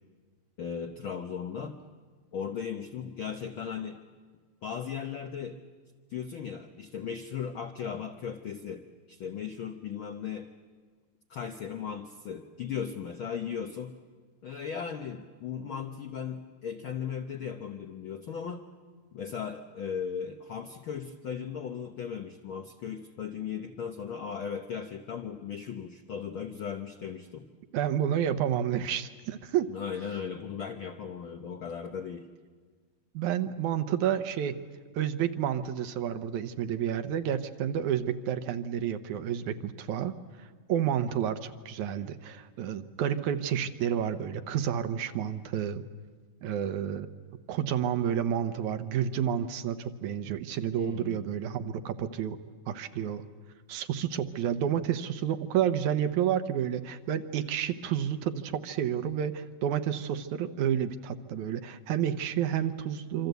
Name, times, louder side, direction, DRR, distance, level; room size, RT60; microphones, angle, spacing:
voice 1, 0.6-1.8 2.3-4.0 4.6-5.6 6.1-10.5 11.3-14.0 14.4-18.6 19.1-27.5 29.7-32.3 50.7-51.2, left 7 dB, 70° left, 5 dB, 1.2 m, -37 dB
voice 2, 27.7-29.7 33.1-34.6 34.9-40.1 40.7-45.8 46.4-47.1 47.5-52.4 52.7-53.2 53.7-63.3, right 9 dB, 75° right, 9 dB, 2.3 m, -30 dB
26.5 x 25.5 x 8.1 m, 1.5 s
omnidirectional pair, 3.6 m